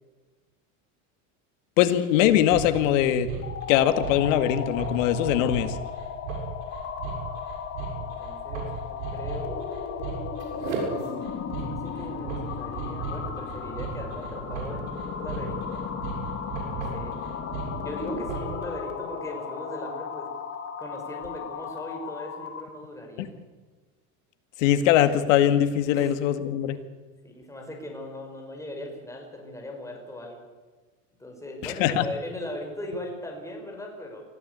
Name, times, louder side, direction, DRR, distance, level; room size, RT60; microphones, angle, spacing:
voice 1, 1.8-3.3 3.7-5.7 23.2-23.3 24.6-26.8 31.8-32.0, left 11 dB, 75° left, 10 dB, 2.1 m, -21 dB
sound 1, 2.2-18.6, right 6 dB, 80° right, 7.3 m, -36 dB
sound 2, 3.3-22.7, left 7 dB, 35° left, 3.2 m, -36 dB
voice 2, 7.1-7.5 7.9-9.7 11.6-15.9 16.7-17.2 17.8-20.3 20.8-23.3 25.9-26.1 26.7-26.8 27.2-30.4 31.2-34.2, left 1 dB, 10° left, 1 dB, 5.6 m, -39 dB
24.0 x 15.5 x 8.3 m, 1.3 s
supercardioid pair, 110°, 39 cm